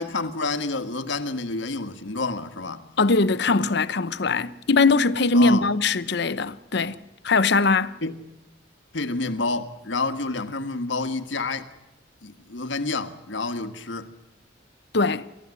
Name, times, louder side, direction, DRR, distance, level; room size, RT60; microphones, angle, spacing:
voice 1, 0.0-2.9 5.3-5.7 8.0-8.2 8.9-11.7 12.2-14.1, left 3 dB, 80° left, 1.5 m, -29 dB
voice 2, 3.0-7.0 7.2-7.9 14.9-15.2, left 3 dB, 65° left, 0.8 m, -21 dB
29.0 x 14.0 x 9.7 m
head